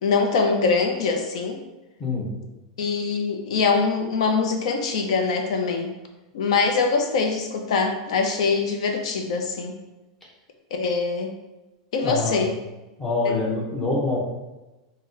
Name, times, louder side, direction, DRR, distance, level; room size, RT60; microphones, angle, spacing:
voice 1, 0.0-1.6 2.8-5.9 6.3-9.8 10.7-11.3 11.9-12.5 13.2-13.4, left 4 dB, 65° left, 3 dB, 0.5 m, -23 dB
voice 2, 12.0-12.4 13.0-14.2, left 3 dB, 5° left, -5 dB, 0.6 m, -25 dB
4.0 x 2.1 x 3.7 m, 1.0 s
supercardioid pair, 175°, 4 cm